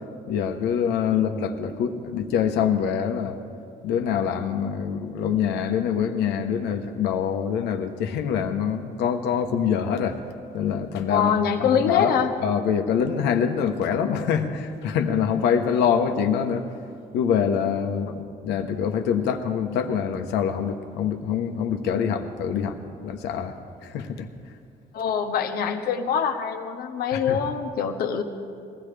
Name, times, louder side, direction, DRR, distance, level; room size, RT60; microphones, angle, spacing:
voice 1, 0.3-3.4 3.8-10.2 10.5-11.3 11.8-12.1 12.4-16.7 17.1-23.6 23.8-24.3 27.1-27.4, left 7 dB, 85° left, 6 dB, 1.1 m, -25 dB
voice 2, 11.1-12.3 24.9-28.2, left 7 dB, 65° left, 5 dB, 1.1 m, -24 dB
21.0 x 15.5 x 3.4 m, 2.3 s
cardioid pair, 110°, 17 cm